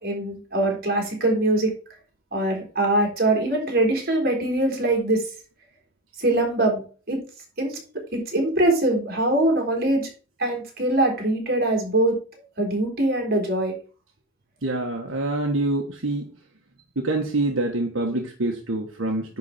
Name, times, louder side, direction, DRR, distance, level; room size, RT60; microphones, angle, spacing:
voice 1, 0.0-1.7 2.3-5.2 6.2-7.2 7.6-7.8 8.1-10.1 10.4-12.2 12.6-13.7, right 1 dB, 50° right, 1 dB, 3.6 m, -22 dB
voice 2, 14.6-16.2 17.0-19.4, right 2 dB, 80° right, 1 dB, 1.4 m, -26 dB
10.5 x 4.1 x 5.8 m, 0.38 s
head